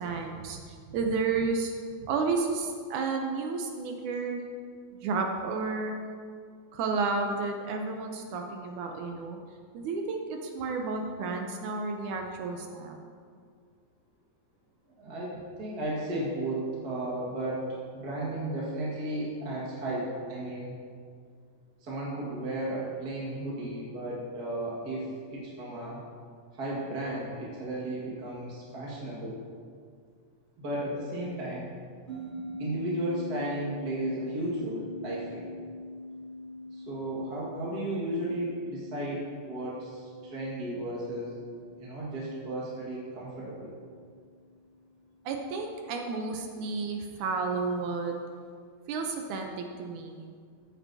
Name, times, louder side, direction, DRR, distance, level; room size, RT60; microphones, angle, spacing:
voice 1, 0.0-1.7 2.0-4.4 5.0-6.0 6.7-9.4 9.7-13.0 45.3-48.1 48.9-50.3, right 4 dB, 75° right, 3 dB, 2.0 m, -31 dB
voice 2, 15.0-20.7 21.8-26.0 26.5-29.4 30.6-31.7 32.1-35.5 36.7-41.4 41.8-43.7, right 1 dB, 40° right, -6 dB, 1.5 m, -34 dB
sound 1, 32.1-44.8, left 1 dB, 20° right, 2.1 m, -43 dB
14.0 x 9.1 x 2.7 m, 2.1 s
omnidirectional pair, 4.0 m